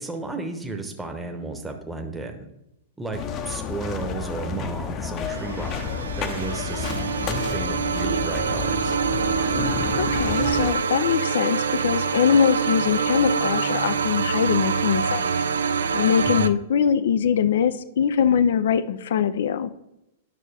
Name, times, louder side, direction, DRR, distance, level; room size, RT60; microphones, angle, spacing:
voice 1, 0.0-2.5 3.0-5.8 6.1-8.9 16.4-16.5, right 3 dB, 5° right, 3 dB, 0.9 m, -33 dB
sound 1, 3.1-10.7, left 7 dB, 35° left, 0.8 m, -31 dB
sound 2, 5.2-16.5, right 6 dB, 75° right, 0.4 m, -25 dB
voice 2, 10.0-15.3 15.9-19.7, left 8 dB, 65° left, 14 dB, 0.4 m, -22 dB
9.3 x 6.2 x 3.4 m, 0.84 s
hypercardioid pair, 110°, 0 cm